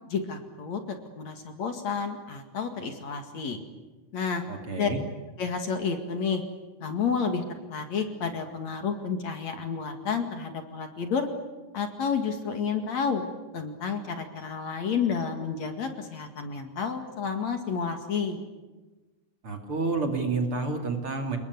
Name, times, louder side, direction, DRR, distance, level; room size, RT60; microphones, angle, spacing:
voice 1, 0.1-3.6 4.1-4.4 4.8-4.9 5.4-6.4 6.8-7.4 7.7-11.3 11.7-13.2 13.5-18.4, left 6 dB, 55° left, 6 dB, 3.1 m, -30 dB
voice 2, 4.5-5.0 19.4-21.4, right 3 dB, 40° right, 4 dB, 3.1 m, -29 dB
29.5 x 20.0 x 9.6 m, 1.2 s
omnidirectional pair, 4.1 m